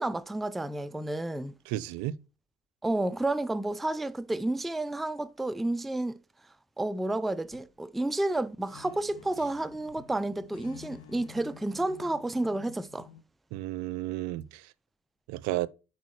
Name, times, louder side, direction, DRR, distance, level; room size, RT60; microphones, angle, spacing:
voice 1, 0.0-1.5 2.8-6.2 6.8-13.1, right 2 dB, ahead, 0.3 m, -31 dB
voice 2, 1.7-2.2 13.5-14.7 15.3-15.7, right 16 dB, 75° right, 0.5 m, -33 dB
sound 1, 7.4-7.8 8.2-8.3 8.7-13.2, left 8 dB, 50° left, 1.1 m, -51 dB
10.5 x 4.6 x 3.1 m
hypercardioid pair, 60°, 30 cm